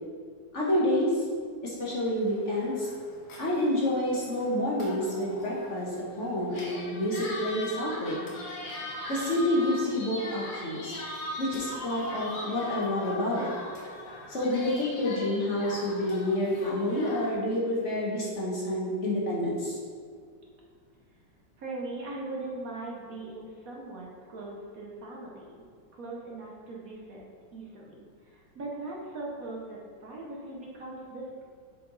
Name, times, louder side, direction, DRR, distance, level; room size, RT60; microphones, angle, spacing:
voice 1, 0.5-1.2 1.6-2.9 3.4-8.3 9.1-11.0 11.4-13.5 14.3-19.8, left 1 dB, 45° left, -5 dB, 1.2 m, -28 dB
sound 1, 2.2-17.3, left 1 dB, 85° left, 1.9 m, -40 dB
voice 2, 21.6-25.6 25.9-27.2 27.5-31.4, right 2 dB, 55° right, -3 dB, 1.1 m, -40 dB
7.4 x 4.6 x 3.8 m, 2.1 s
omnidirectional pair, 2.0 m